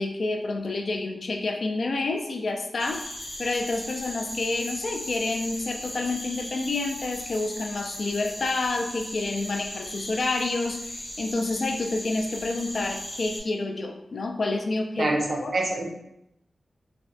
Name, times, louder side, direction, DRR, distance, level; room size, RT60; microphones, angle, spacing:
voice 1, 0.0-3.1 3.4-15.1 15.4-15.5, left 3 dB, 60° left, 4 dB, 0.3 m, -29 dB
sound 1, 2.8-13.4, left 1 dB, 80° left, 0.7 m, -37 dB
voice 2, 15.0-15.9, right 2 dB, 60° right, 0 dB, 0.5 m, -26 dB
3.2 x 2.0 x 2.6 m, 0.82 s
wide cardioid pair, 130°, 0 cm